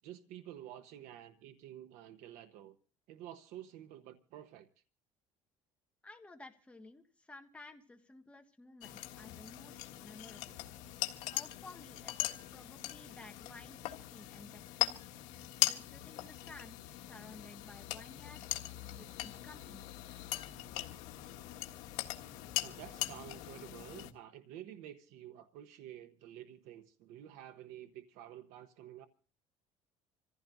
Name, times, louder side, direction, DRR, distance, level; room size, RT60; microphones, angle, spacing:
voice 1, 0.0-2.8 3.1-4.7 22.6-29.1, right 11 dB, 80° right, 1.0 m, -50 dB
voice 2, 6.0-10.6 11.3-15.0 15.6-18.6 19.0-19.9, left 2 dB, 10° left, 1.6 m, -54 dB
sound 1, 8.8-24.1, left 15 dB, 85° left, 1.7 m, -40 dB
27.0 x 15.5 x 2.6 m
cardioid pair, 150°, 13 cm